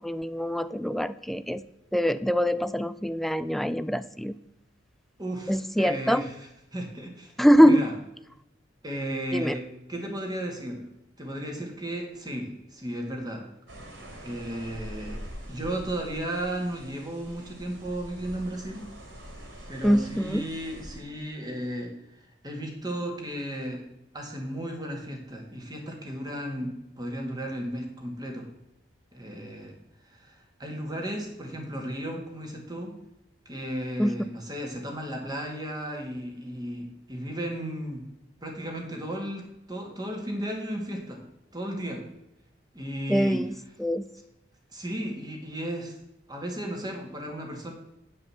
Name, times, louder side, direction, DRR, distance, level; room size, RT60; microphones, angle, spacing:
voice 1, 0.0-1.6 1.9-4.4 5.5-6.3 7.4-7.8 9.3-9.5 19.8-20.4 34.0-34.1 43.1-43.5 43.8-44.0, equal, ahead, 13 dB, 0.3 m, -23 dB
voice 2, 5.2-7.3 7.6-7.9 8.8-10.8 11.2-13.5 14.2-15.2 15.5-18.9 19.7-21.9 22.4-23.8 24.1-28.5 29.1-29.7 30.0-32.9 33.5-38.0 38.4-41.2 41.5-42.1 42.7-43.5 44.7-46.0 46.3-47.7, right 1 dB, 20° right, 1 dB, 2.0 m, -34 dB
sound 1, 13.7-21.0, equal, 75° right, 3.2 m, -44 dB
9.3 x 5.5 x 7.1 m, 0.88 s
head